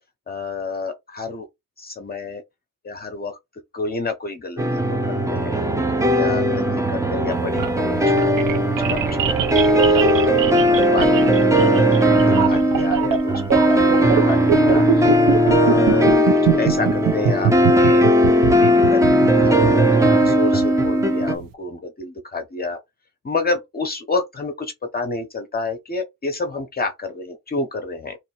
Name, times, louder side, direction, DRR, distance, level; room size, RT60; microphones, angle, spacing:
voice 1, 0.3-1.5 1.8-2.4 2.8-3.4 3.7-5.6 6.1-8.6 8.8-10.2 10.7-15.1 15.4-18.1 18.4-22.8 23.2-28.2, left 3 dB, 30° left, 0.7 m, -29 dB
sound 1, 4.6-21.3, equal, 10° right, 0.5 m, -17 dB
sound 2, 7.3-21.5, right 9 dB, 80° right, 0.7 m, -24 dB
3.1 x 2.8 x 4.3 m
wide cardioid pair, 175°, 32 cm